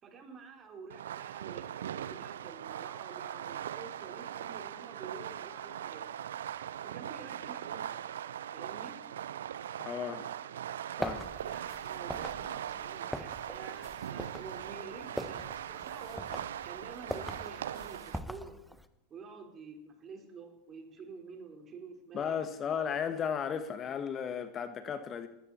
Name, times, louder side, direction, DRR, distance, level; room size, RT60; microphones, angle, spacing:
voice 1, 0.0-6.0 6.8-8.0 8.5-9.0 11.4-18.6 19.1-22.4, right 4 dB, 30° right, 4.7 m, -49 dB
Fireworks, 0.9-18.2, right 10 dB, 80° right, 0.6 m, -40 dB
voice 2, 9.8-10.3 11.0-11.2 22.1-25.3, left 7 dB, 30° left, 1.4 m, -35 dB
sound 1, 11.0-18.8, equal, ahead, 1.2 m, -43 dB
20.0 x 15.5 x 4.4 m
hypercardioid pair, 100°, 0 cm